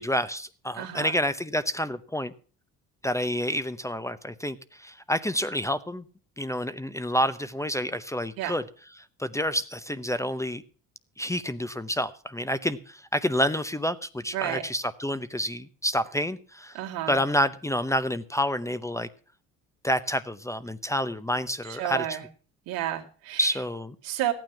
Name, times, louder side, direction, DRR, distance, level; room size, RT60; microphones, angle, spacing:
voice 1, 0.0-2.3 3.0-6.0 6.4-8.6 9.2-10.6 11.2-16.8 17.1-19.1 19.8-22.2 23.4-24.0, equal, 10° left, 13 dB, 0.7 m, -28 dB
voice 2, 0.7-1.2 8.4-8.5 14.3-14.6 16.7-17.2 21.7-22.2 22.7-23.5 24.0-24.3, right 13 dB, 85° right, 2 dB, 2.3 m, -31 dB
14.0 x 9.2 x 5.9 m, 0.41 s
supercardioid pair, 90°, 35 cm